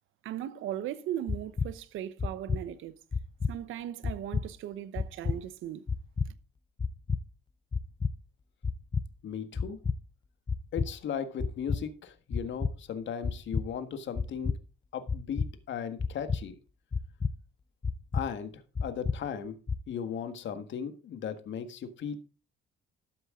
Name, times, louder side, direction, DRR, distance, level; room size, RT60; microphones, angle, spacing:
voice 1, 0.2-3.0 3.5-5.9 6.3-6.4, right 11 dB, 85° right, 1.0 m, -38 dB
sound 1, 1.3-1.7 2.2-2.6 3.1-3.5 4.0-4.5 5.0-5.4 5.9-6.3 6.8-7.2 7.7-8.1 8.6-9.1 9.6-10.0 10.5-10.9 11.4-11.8 12.3-12.7 13.2-13.6 14.2-14.6 15.1-15.5 16.0-16.4 16.9-17.3 17.8-18.3 18.8-19.2 19.7-19.8, left 5 dB, 25° left, 0.7 m, -30 dB
voice 2, 9.2-9.8 10.7-14.5 14.9-16.6 18.1-19.6 19.9-22.2, left 7 dB, 70° left, 1.6 m, -37 dB
13.0 x 7.9 x 3.7 m
cardioid pair, 90°, 20 cm